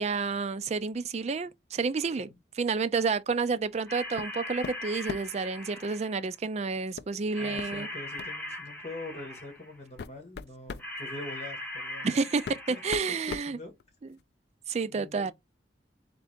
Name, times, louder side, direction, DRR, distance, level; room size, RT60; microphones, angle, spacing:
voice 1, 0.0-2.3 2.6-7.9 12.0-13.6 14.7-15.3, right 4 dB, 40° right, 0.4 m, -30 dB
voice 2, 2.0-2.4 7.4-12.1 12.7-12.8 13.2-13.7 14.8-15.3, left 2 dB, 35° left, 1.6 m, -44 dB
sound 1, 3.9-6.3 7.3-9.8 10.8-13.2, left 1 dB, 10° left, 2.2 m, -40 dB
sound 2, 4.2-4.4 4.6-5.4 7.0-7.1 7.6-7.7 8.2-8.4 9.2-9.3 9.8-10.9 12.0-12.1 12.4-14.2, left 5 dB, 60° left, 0.3 m, -40 dB
3.7 x 3.6 x 3.5 m
head